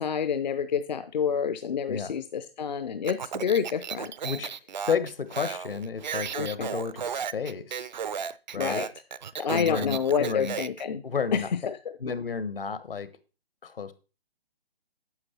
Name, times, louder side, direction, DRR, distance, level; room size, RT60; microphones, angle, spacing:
voice 1, 0.0-4.1 6.3-6.7 8.5-8.9 9.4-11.0 11.3-11.8, left 7 dB, 50° left, 12 dB, 0.6 m, -28 dB
Speech, 3.0-10.8, right 7 dB, 50° right, 0.5 m, -34 dB
voice 2, 4.9-7.9 8.5-8.9 9.5-10.5 11.0-11.5 12.0-13.1 13.6-13.9, left 6 dB, 70° left, 13 dB, 1.2 m, -31 dB
9.7 x 6.5 x 4.4 m, 0.34 s
figure-of-eight pair, 140°, 29 cm